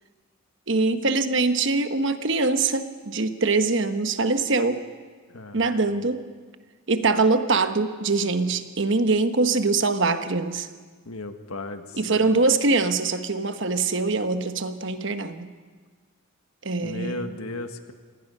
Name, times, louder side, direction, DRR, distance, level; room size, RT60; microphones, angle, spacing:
voice 1, 0.7-4.8 5.5-6.2 6.9-10.7 12.0-15.5 16.6-17.3, right 3 dB, 60° right, 9 dB, 1.1 m, -23 dB
voice 2, 5.3-5.8 11.0-12.3 16.8-17.9, left 2 dB, 90° left, 7 dB, 1.5 m, -35 dB
26.5 x 19.0 x 5.5 m, 1.5 s
head